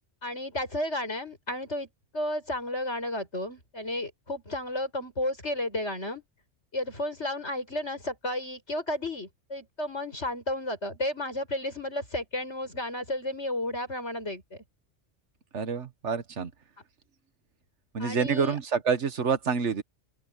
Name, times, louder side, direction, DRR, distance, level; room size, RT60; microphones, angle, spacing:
voice 1, 0.2-1.9 2.1-6.2 6.7-14.6 18.0-18.6, left 1 dB, 65° left, 7.0 m, -32 dB
voice 2, 15.5-16.5 17.9-19.8, right 5 dB, 70° right, 1.5 m, -27 dB
open air
omnidirectional pair, 1.3 m